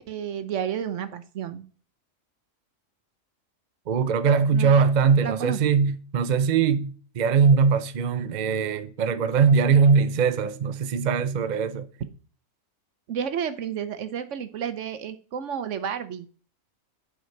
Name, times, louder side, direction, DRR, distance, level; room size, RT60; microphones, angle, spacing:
voice 1, 0.1-1.7 4.5-4.8 5.2-5.6 13.1-16.3, right 8 dB, 70° right, 1.1 m, -31 dB
voice 2, 3.9-11.9, right 6 dB, 45° right, 0.6 m, -21 dB
9.1 x 5.1 x 4.5 m
omnidirectional pair, 1.4 m